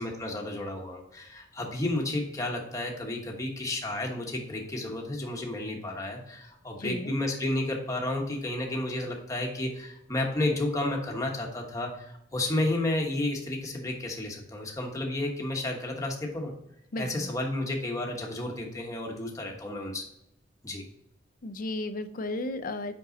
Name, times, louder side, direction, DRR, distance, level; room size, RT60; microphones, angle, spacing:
voice 1, 0.0-16.5 17.0-20.1 20.6-20.8, left 1 dB, 15° left, 0 dB, 1.1 m, -32 dB
voice 2, 6.8-7.1 16.9-17.3 21.4-22.9, left 2 dB, 45° left, 11 dB, 0.5 m, -34 dB
5.5 x 5.4 x 3.9 m, 0.78 s
head